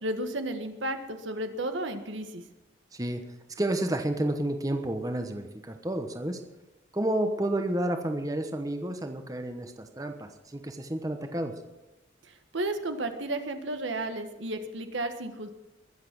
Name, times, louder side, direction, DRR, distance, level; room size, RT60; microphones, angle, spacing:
voice 1, 0.0-2.4 12.3-15.5, right 1 dB, 85° right, 7 dB, 1.5 m, -33 dB
voice 2, 2.9-3.3 3.6-6.4 6.9-11.5, right 1 dB, 20° right, 6 dB, 1.0 m, -30 dB
21.5 x 7.5 x 6.1 m, 1.0 s
head